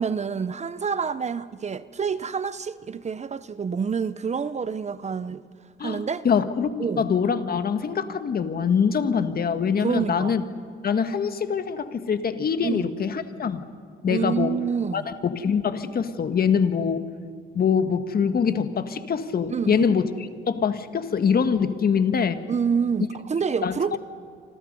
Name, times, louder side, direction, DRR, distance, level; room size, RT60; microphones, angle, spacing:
voice 1, 0.0-5.4 5.8-6.2 6.8-7.1 9.8-10.4 12.6-12.9 14.0-15.1 19.5-19.8 22.5-24.0, right 6 dB, 35° right, 0.8 m, -27 dB
voice 2, 5.8-10.4 10.8-13.6 14.0-14.6 14.9-17.0 17.5-22.4 23.6-24.0, left 6 dB, 50° left, 1.6 m, -24 dB
29.0 x 25.5 x 5.5 m
cardioid pair, 90°, 20 cm